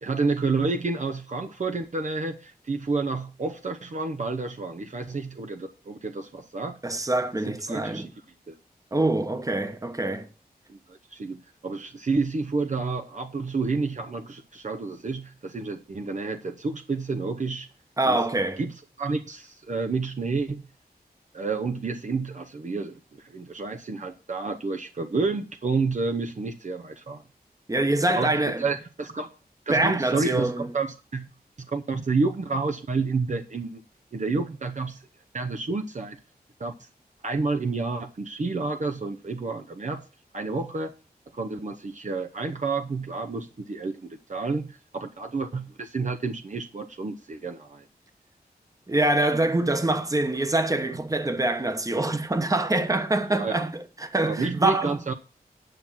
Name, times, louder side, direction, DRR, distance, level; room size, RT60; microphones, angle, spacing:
voice 1, 0.0-6.8 7.5-8.1 8.5-8.6 10.7-17.7 18.1-18.2 18.6-20.6 21.3-27.2 28.1-29.3 29.7-31.3 31.6-33.8 34.1-35.0 35.3-36.2 36.6-36.9 37.2-40.0 40.3-40.9 41.3-47.9 53.3-53.7 54.2-55.1, right 4 dB, 50° right, 0.8 m, -30 dB
voice 2, 6.8-8.1 8.9-10.3 18.0-18.6 27.7-28.7 29.7-30.7 48.9-55.0, right 2 dB, 20° right, 1.1 m, -25 dB
9.5 x 6.1 x 5.5 m
wide cardioid pair, 90°, 16 cm